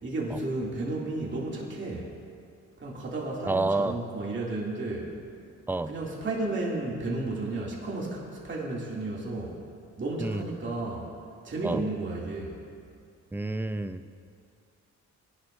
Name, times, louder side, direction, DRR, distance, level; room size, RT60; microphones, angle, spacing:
voice 1, 0.0-2.1 2.8-5.1 5.8-9.6 10.0-11.1 11.4-12.6, right 2 dB, 40° right, -4 dB, 2.6 m, -33 dB
voice 2, 3.5-4.0 5.7-5.9 10.2-10.4 11.6-11.8 13.3-14.0, right 2 dB, 5° right, 11 dB, 0.4 m, -28 dB
20.0 x 11.0 x 2.6 m, 2.4 s
cardioid pair, 90°, 30 cm